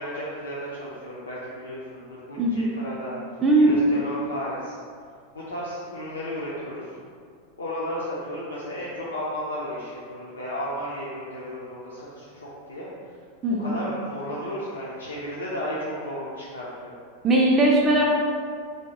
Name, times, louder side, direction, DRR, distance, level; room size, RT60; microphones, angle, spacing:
voice 1, 0.0-3.1 3.5-4.8 5.3-6.9 7.6-12.9 13.6-16.9, equal, 75° left, -7 dB, 0.4 m, -33 dB
voice 2, 2.4-2.8 3.4-3.7 13.4-13.8 17.2-18.0, right 2 dB, 20° right, -3 dB, 0.3 m, -19 dB
2.7 x 2.1 x 3.0 m, 2.1 s
figure-of-eight pair, 90°, 0 cm